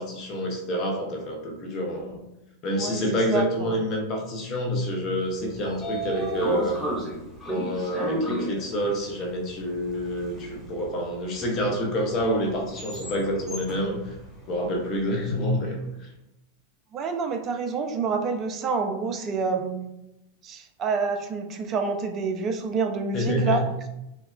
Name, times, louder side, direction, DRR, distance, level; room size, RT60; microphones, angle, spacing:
voice 1, 0.0-2.2 2.6-6.8 7.5-14.2 14.5-16.1 23.1-23.7, equal, 35° left, 2 dB, 0.6 m, -27 dB
voice 2, 2.8-3.8 16.9-19.9 20.4-23.6, right 5 dB, 30° right, 6 dB, 0.3 m, -28 dB
Train / Sliding door, 5.2-15.4, right 1 dB, ahead, 0.8 m, -35 dB
3.5 x 2.1 x 2.2 m, 0.89 s
figure-of-eight pair, 90°, 0 cm